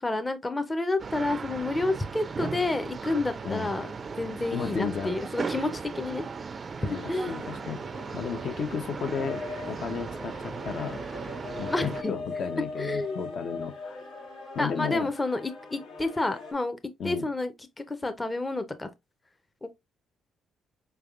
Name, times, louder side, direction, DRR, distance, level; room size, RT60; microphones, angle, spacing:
voice 1, 0.0-3.9 4.2-6.2 6.8-7.4 11.7-12.1 12.8-13.3 14.6-16.8 17.0-18.9 19.6-19.7, left 2 dB, 20° left, 0.6 m, -30 dB
sound 1, 1.0-12.0, right 5 dB, 40° right, 0.3 m, -37 dB
voice 2, 4.5-5.2 6.9-7.8 8.1-11.0 11.6-14.0 14.5-15.1 17.0-17.3, left 6 dB, 65° left, 0.7 m, -33 dB
sound 2, 6.8-16.5, left 3 dB, 90° left, 1.6 m, -41 dB
4.7 x 3.4 x 2.4 m
cardioid pair, 90°, 0 cm